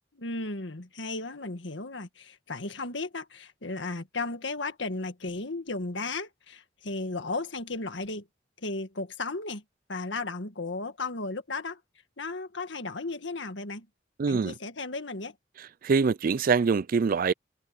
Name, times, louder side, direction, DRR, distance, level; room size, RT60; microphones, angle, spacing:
voice 1, 0.1-8.3 8.6-9.6 9.9-11.8 12.2-13.9 14.3-15.4, left 3 dB, 75° left, 1.8 m, -35 dB
voice 2, 14.2-14.5 15.8-17.3, right 5 dB, 50° right, 0.4 m, -24 dB
head